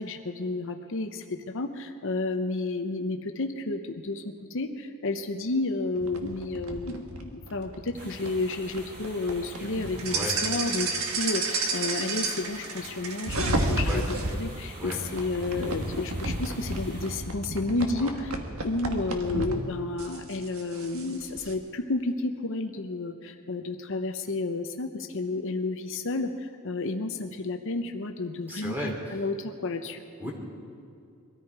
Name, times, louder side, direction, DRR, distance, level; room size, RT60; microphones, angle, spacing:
voice 1, 0.0-14.1 14.4-18.3 18.6-30.3, left 2 dB, 60° left, 6 dB, 0.8 m, -31 dB
sound 1, 6.0-14.3 14.9-19.5 20.0-21.5, right 2 dB, 70° right, 1.6 m, -32 dB
sound 2, 7.9-17.2, right 1 dB, 45° right, 3.9 m, -47 dB
voice 2, 28.5-29.2 30.2-30.3, equal, 10° right, -1 dB, 2.9 m, -35 dB
22.0 x 14.0 x 4.7 m, 2.6 s
head